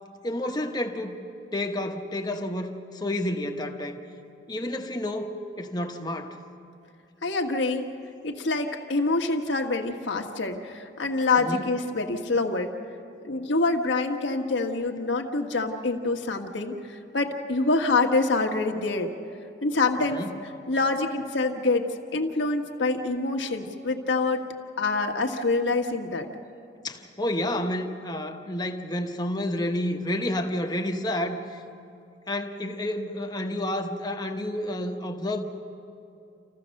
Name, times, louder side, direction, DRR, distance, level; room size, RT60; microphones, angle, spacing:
voice 1, 0.2-1.2 1.5-4.0 4.5-6.4 11.4-11.6 20.1-20.3 26.8-31.6 32.3-35.4, left 1 dB, 20° left, 4 dB, 1.0 m, -30 dB
voice 2, 7.2-7.9 8.2-12.7 13.2-19.1 19.6-20.2 20.7-21.9 22.1-24.4 24.8-26.3, left 3 dB, 75° left, 3 dB, 1.4 m, -26 dB
28.0 x 15.0 x 6.5 m, 2.6 s
head